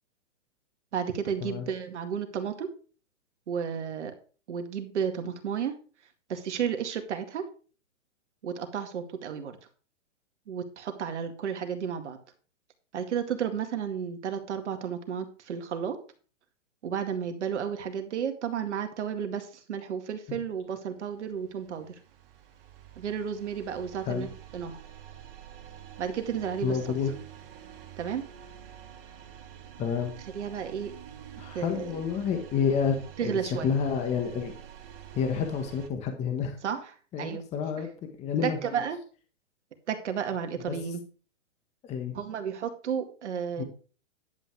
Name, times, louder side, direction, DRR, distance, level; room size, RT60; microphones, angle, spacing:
voice 1, 0.9-2.7 3.5-4.1 4.5-5.7 6.3-7.5 8.4-9.6 10.5-12.2 12.9-16.0 16.8-21.9 23.0-24.8 26.0-26.8 28.0-28.2 30.3-30.9 31.5-32.0 33.2-33.8 36.6-37.4 38.4-39.0 39.9-41.0 42.1-43.6, right 7 dB, 65° right, 6 dB, 2.2 m, -32 dB
sound 1, 21.0-35.9, right 10 dB, 50° right, 2.3 m, -47 dB
voice 2, 26.6-27.1 29.8-30.1 31.4-34.5 35.1-36.5 37.1-37.9 38.2-38.8 41.9-42.2 43.6-43.7, left 6 dB, 15° left, 5 dB, 1.5 m, -29 dB
11.0 x 8.2 x 4.7 m, 0.38 s
hypercardioid pair, 150°, 38 cm